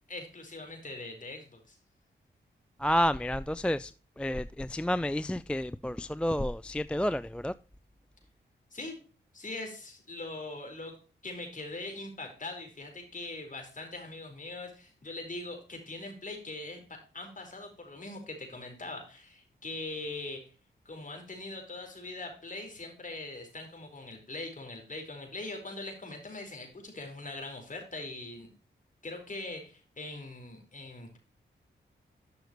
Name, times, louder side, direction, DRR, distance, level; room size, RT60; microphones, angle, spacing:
voice 1, 0.1-1.8 8.7-9.0 9.3-10.9 11.2-20.4 20.8-28.5 29.0-31.2, left 2 dB, 45° left, 4.5 m, -41 dB
voice 2, 2.8-7.5, equal, 5° left, 0.4 m, -30 dB
12.0 x 6.4 x 3.0 m
cardioid pair, 55°, 19 cm